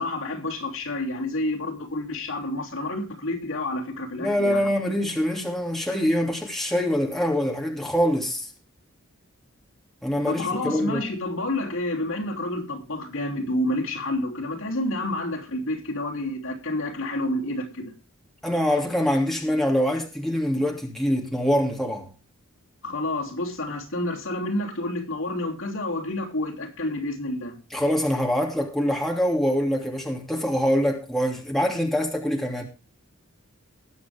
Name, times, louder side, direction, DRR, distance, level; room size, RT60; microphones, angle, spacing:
voice 1, 0.0-4.6 10.3-17.9 22.8-27.6, left 1 dB, 65° left, 3.3 m, -29 dB
voice 2, 4.2-8.5 10.0-11.0 18.4-22.1 27.7-32.6, equal, ahead, 2.7 m, -24 dB
20.5 x 7.6 x 3.6 m
head